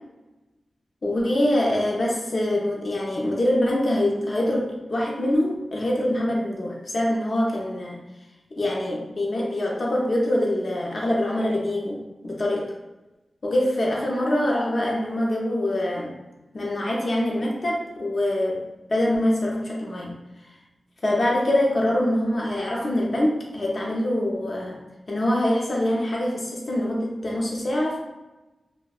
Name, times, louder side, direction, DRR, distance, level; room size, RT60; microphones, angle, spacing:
voice 1, 1.0-8.0 8.6-12.7 13.4-16.1 16.5-18.6 18.9-20.1 21.0-24.8 25.1-28.0, left 1 dB, 60° left, -2 dB, 0.6 m, -24 dB
2.6 x 2.1 x 2.3 m, 1.0 s
cardioid pair, 45°, 0 cm